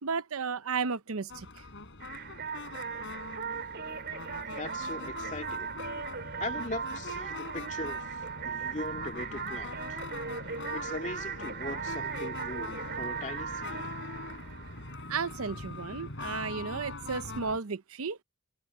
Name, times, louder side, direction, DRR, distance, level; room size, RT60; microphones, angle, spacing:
voice 1, 0.0-1.7 15.1-18.2, right 5 dB, 70° right, 0.7 m, -33 dB
sound 1, 1.3-17.6, left 3 dB, 55° left, 5.0 m, -42 dB
sound 2, 2.0-15.5, right 6 dB, 50° right, 3.4 m, -38 dB
voice 2, 4.6-5.7 6.4-10.0 10.7-14.0, left 2 dB, 35° left, 2.5 m, -40 dB
head